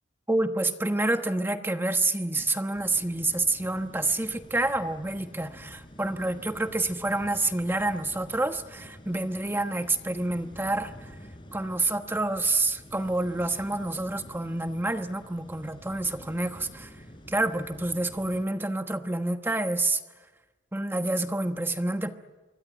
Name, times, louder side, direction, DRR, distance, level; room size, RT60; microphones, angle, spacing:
voice 1, 0.3-11.1 11.5-16.9 17.3-20.0 20.7-22.1, right 2 dB, 15° right, 7 dB, 1.2 m, -28 dB
sound 1, 2.7-18.4, equal, 30° left, 4.5 m, -49 dB
25.5 x 23.0 x 9.0 m, 1.2 s
head